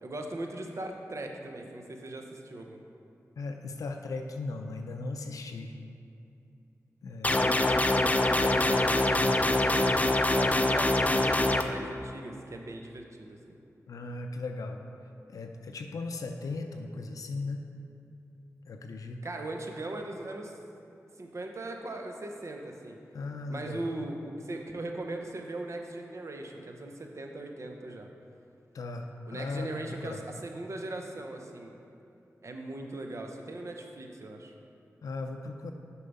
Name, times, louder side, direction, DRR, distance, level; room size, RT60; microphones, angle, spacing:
voice 1, 0.0-2.8 8.1-13.6 19.2-20.6 21.2-23.0 23.5-28.1 29.3-31.7 32.4-34.5, right 2 dB, 55° right, 3 dB, 0.8 m, -39 dB
voice 2, 3.4-5.7 7.0-7.5 8.3-8.5 9.2-9.4 13.9-14.8 15.3-17.6 18.7-19.2 23.1-23.8 28.7-30.2 35.0-35.7, left 3 dB, 85° left, 4 dB, 0.4 m, -37 dB
sound 1, 7.2-11.6, left 2 dB, 25° left, 0.4 m, -24 dB
6.7 x 4.6 x 5.3 m, 2.7 s
cardioid pair, 45°, 6 cm